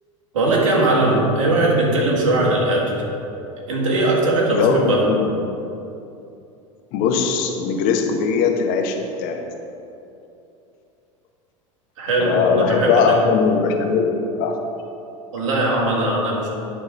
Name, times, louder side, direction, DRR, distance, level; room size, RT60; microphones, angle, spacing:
voice 1, 0.3-3.0 3.7-5.2 12.0-13.2 15.3-16.5, right 2 dB, 75° right, -2 dB, 1.7 m, -19 dB
voice 2, 4.5-5.3 6.9-9.4 12.2-14.5, left 5 dB, 55° left, 3 dB, 1.0 m, -20 dB
10.5 x 3.7 x 5.1 m, 2.8 s
hypercardioid pair, 85°, 17 cm